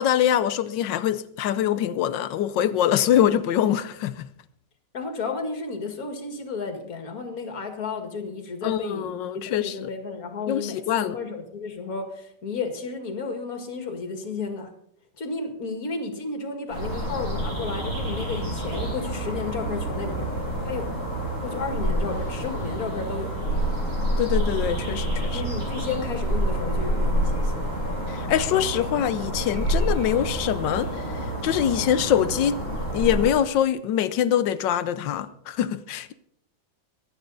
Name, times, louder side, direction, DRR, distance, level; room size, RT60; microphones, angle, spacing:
voice 1, 0.0-4.3 8.6-9.9 10.5-11.2 24.2-25.4 28.1-30.9 31.4-32.6 32.9-36.1, left 10 dB, 75° left, 1.4 m, -24 dB
voice 2, 4.9-9.1 9.4-14.7 15.2-20.4 20.6-20.9 21.4-23.3 25.3-27.8, left 4 dB, 50° left, 2.3 m, -32 dB
sound 1, 16.7-33.3, right 1 dB, 40° right, 6.7 m, -28 dB
24.5 x 9.0 x 4.0 m
omnidirectional pair, 2.0 m